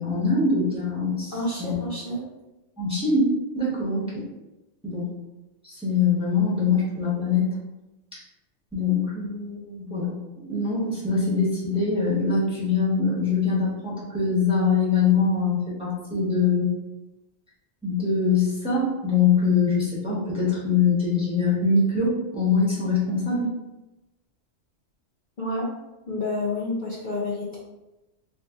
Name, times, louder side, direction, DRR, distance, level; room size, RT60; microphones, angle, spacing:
voice 1, 0.0-1.3 1.6-1.7 2.8-3.3 3.5-4.2 4.8-5.0 5.6-7.5 8.1-8.2 8.7-10.2 10.5-16.7 17.8-23.5, left 4 dB, 5° right, -7 dB, 0.9 m, -23 dB
voice 2, 1.3-2.2 25.4-25.7 26.1-27.6, left 2 dB, 50° left, -7 dB, 0.7 m, -29 dB
2.8 x 2.5 x 3.5 m, 1.0 s
omnidirectional pair, 1.2 m